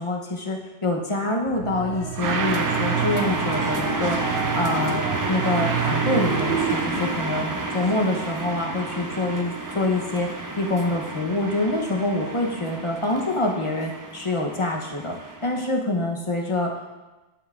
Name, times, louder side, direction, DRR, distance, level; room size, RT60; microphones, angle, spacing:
voice 1, 0.0-4.2 4.6-15.2 15.4-16.9, left 2 dB, 35° left, 0 dB, 0.8 m, -26 dB
sound 1, 1.5-7.0, right 7 dB, 65° right, 0.7 m, -28 dB
sound 2, 2.2-15.7, right 2 dB, 30° right, 0.4 m, -30 dB
11.5 x 5.4 x 2.4 m, 1.1 s
omnidirectional pair, 1.1 m